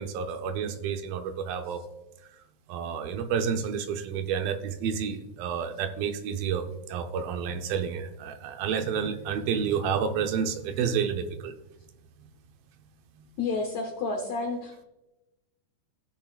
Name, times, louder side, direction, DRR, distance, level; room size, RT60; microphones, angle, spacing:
voice 1, 0.0-1.8 2.7-11.5 12.2-12.3, right 7 dB, 80° right, 7 dB, 2.5 m, -30 dB
voice 2, 13.4-14.8, left 3 dB, 70° left, 3 dB, 1.7 m, -30 dB
16.5 x 6.5 x 2.4 m, 0.95 s
omnidirectional pair, 4.3 m